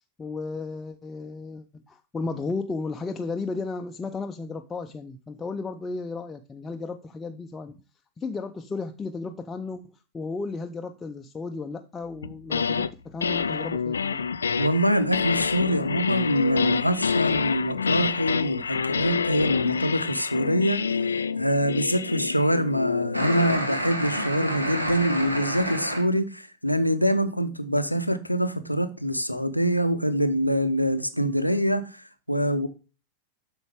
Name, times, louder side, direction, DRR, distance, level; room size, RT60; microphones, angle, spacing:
voice 1, 0.2-7.8 8.2-9.8 10.1-14.3, left 3 dB, 15° left, 0.6 m, -34 dB
sound 1, 12.2-12.9 13.2-23.6, left 6 dB, 70° left, 0.3 m, -27 dB
voice 2, 14.6-20.8 21.1-32.7, equal, 90° left, 0.7 m, -25 dB
sound 2, 23.1-26.0, equal, 90° right, 1.2 m, -29 dB
8.0 x 6.1 x 3.4 m
figure-of-eight pair, 90°, 0 cm